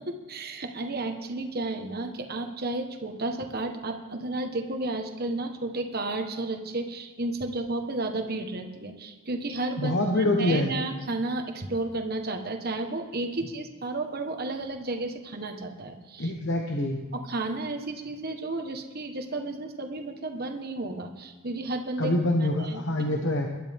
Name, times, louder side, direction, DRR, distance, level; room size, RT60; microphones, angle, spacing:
voice 1, 0.0-16.3 17.1-22.8, right 2 dB, 45° right, 5 dB, 1.3 m, -32 dB
voice 2, 9.8-10.7 16.2-17.0 22.0-23.5, left 1 dB, 55° left, 2 dB, 1.2 m, -25 dB
21.0 x 11.5 x 3.6 m, 1.3 s
head